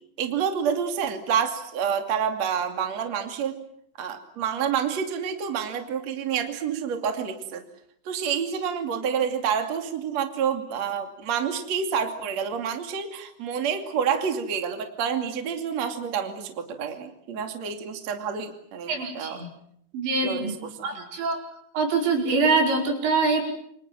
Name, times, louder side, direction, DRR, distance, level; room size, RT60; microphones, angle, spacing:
voice 1, 0.2-3.6 4.0-7.6 8.1-19.5 20.2-20.5 20.9-21.1, right 7 dB, 45° right, 5 dB, 3.4 m, -28 dB
voice 2, 18.9-19.5 19.9-20.5 20.8-21.4 21.7-23.5, right 3 dB, 80° right, 2 dB, 7.4 m, -24 dB
28.5 x 26.0 x 7.6 m, 0.69 s
omnidirectional pair, 5.0 m